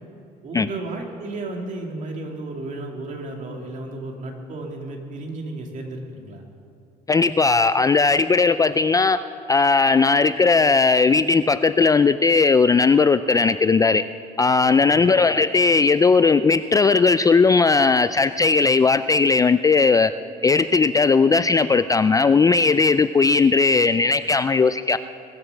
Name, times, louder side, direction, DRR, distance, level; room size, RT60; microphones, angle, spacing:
voice 1, 0.4-6.4 14.7-15.1, right 2 dB, 45° right, 1 dB, 2.5 m, -33 dB
voice 2, 7.1-9.2 9.5-14.0 14.4-20.1 20.4-25.0, left 4 dB, 20° left, 12 dB, 0.3 m, -17 dB
21.0 x 7.2 x 7.1 m, 2.6 s
cardioid pair, 110°, 17 cm